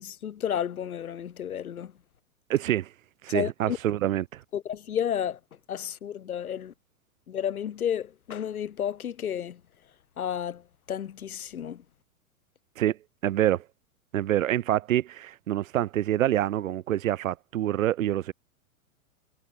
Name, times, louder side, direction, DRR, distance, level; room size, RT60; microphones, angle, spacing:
voice 1, 0.0-1.9 3.3-3.8 4.5-5.4 5.7-6.7 7.3-9.6 10.2-10.6 10.9-11.8, left 9 dB, 80° left, 1.6 m, -31 dB
voice 2, 2.5-2.9 3.2-4.4 12.8-13.6 14.1-18.3, right 12 dB, 65° right, 2.3 m, -26 dB
hypercardioid pair, 110°, 43 cm